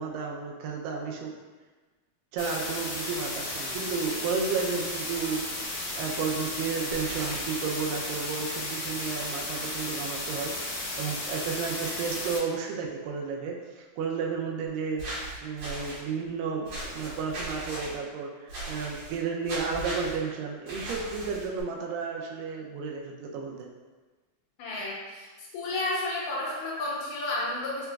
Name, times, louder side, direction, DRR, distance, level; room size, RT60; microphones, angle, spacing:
voice 1, 0.0-1.3 2.3-5.4 6.0-15.0 15.4-23.7, right 5 dB, 80° right, -1 dB, 2.2 m, -32 dB
sound 1, 2.4-12.4, left 2 dB, 65° left, 1.6 m, -34 dB
sound 2, 6.9-7.4 15.0-16.0 16.7-18.0 18.5-19.2 19.4-20.2 20.7-21.6, right 1 dB, 60° right, 2.6 m, -37 dB
voice 2, 24.6-25.3 25.5-27.9, left 2 dB, 80° left, -4 dB, 2.2 m, -31 dB
5.7 x 2.9 x 2.3 m, 1.3 s
omnidirectional pair, 4.1 m